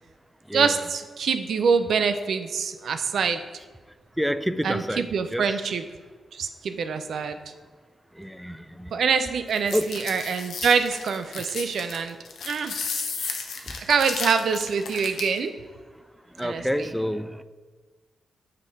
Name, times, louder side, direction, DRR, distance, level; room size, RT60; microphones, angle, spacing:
voice 1, 0.5-3.4 4.6-5.8 6.3-7.4 8.9-12.2 12.4-12.7 13.2-13.4 13.9-15.5 16.4-16.9, right 6 dB, 70° right, 9 dB, 0.4 m, -25 dB
voice 2, 4.2-5.5 8.1-9.0 9.7-9.9 13.7-13.8 16.4-17.4, equal, ahead, 12 dB, 0.4 m, -28 dB
sound 1, 9.5-15.4, left 5 dB, 75° left, 0.7 m, -33 dB
6.6 x 3.7 x 4.7 m, 1.4 s
supercardioid pair, 45°, 0 cm